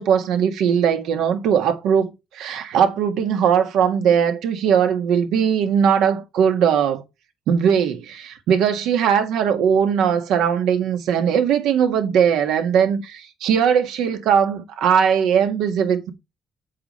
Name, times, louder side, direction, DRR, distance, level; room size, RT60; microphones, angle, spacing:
voice 1, 0.0-7.0 7.5-16.1, right 8 dB, 90° right, 1.8 m, -19 dB
8.5 x 7.2 x 4.3 m
cardioid pair, 90°, 0 cm